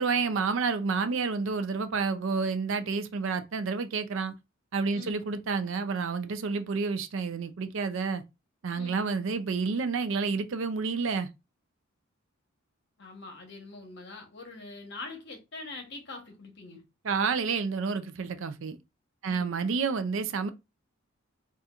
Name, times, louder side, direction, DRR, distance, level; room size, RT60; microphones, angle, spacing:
voice 1, 0.0-4.3 4.7-8.2 8.6-11.3 17.0-18.8 19.2-20.5, right 4 dB, 65° right, 0.4 m, -29 dB
voice 2, 13.0-16.8 19.3-19.5, left 3 dB, 55° left, 1.1 m, -44 dB
4.2 x 2.4 x 2.4 m
head